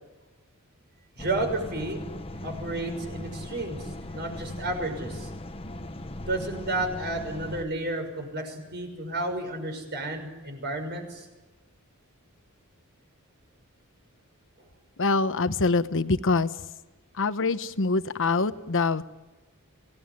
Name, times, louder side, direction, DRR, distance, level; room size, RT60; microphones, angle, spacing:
sound 1, 1.2-7.6, left 1 dB, 25° left, 1.1 m, -38 dB
voice 1, 1.2-2.0 2.4-3.9 4.1-5.3 6.3-11.3, right 2 dB, 50° right, 5 dB, 6.3 m, -32 dB
voice 2, 15.0-16.5 17.2-19.0, left 3 dB, 60° left, 12 dB, 1.1 m, -24 dB
27.0 x 18.5 x 9.9 m, 1.2 s
head